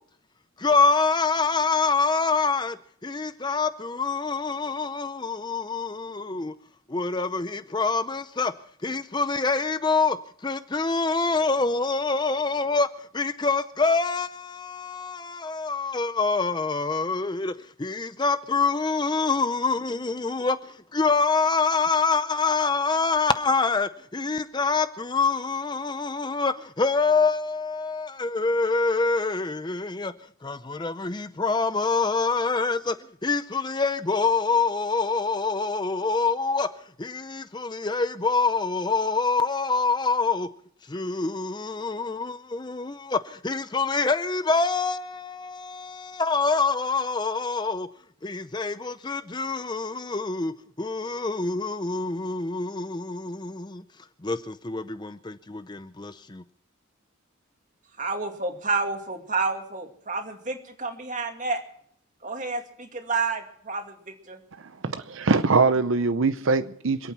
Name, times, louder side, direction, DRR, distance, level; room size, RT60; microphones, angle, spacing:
voice 1, 0.6-2.8 3.0-6.5 6.9-8.5 8.8-10.2 10.4-12.9 13.1-17.5 17.8-30.1 30.4-33.0 33.2-36.7 37.0-40.5 40.9-47.9 48.2-53.8 54.2-56.4, left 4 dB, 20° left, 0.6 m, -26 dB
voice 2, 58.0-61.6 62.2-64.4, right 4 dB, 35° right, 2.3 m, -30 dB
voice 3, 64.6-67.1, right 4 dB, 65° right, 0.7 m, -23 dB
26.5 x 8.9 x 6.0 m
head